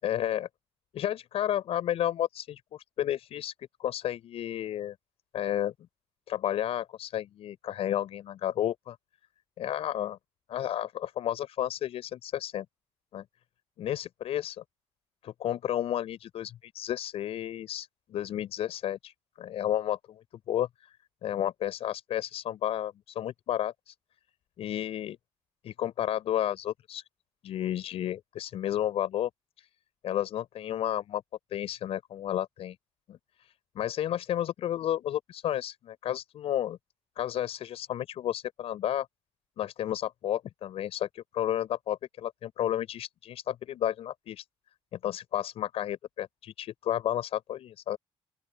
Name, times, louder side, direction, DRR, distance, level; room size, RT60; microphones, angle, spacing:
voice 1, 0.0-0.5 0.9-2.6 3.0-4.9 5.3-5.7 6.3-9.0 9.6-10.2 10.5-12.7 13.1-13.2 13.8-14.6 15.2-20.7 21.2-23.9 24.6-25.2 25.6-27.0 27.4-29.3 29.6-29.7 30.0-31.2 31.5-32.8 33.1-36.8 37.2-39.1 39.6-44.4 44.9-48.0, left 11 dB, 70° left, 7.6 m, -32 dB
open air
cardioid pair, 105°, 10 cm